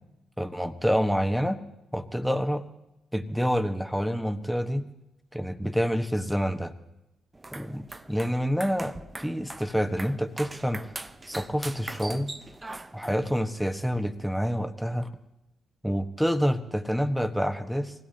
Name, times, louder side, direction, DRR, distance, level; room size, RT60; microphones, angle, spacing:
voice 1, 0.4-1.6 1.9-2.6 3.1-4.9 5.3-6.7 7.5-10.8 11.3-12.3 12.9-15.1 15.8-17.9, equal, ahead, 7 dB, 1.3 m, -27 dB
sound 1, 7.3-13.3, right 2 dB, 25° right, 0.8 m, -41 dB
24.5 x 17.0 x 2.9 m, 0.93 s
hypercardioid pair, 45°, 0 cm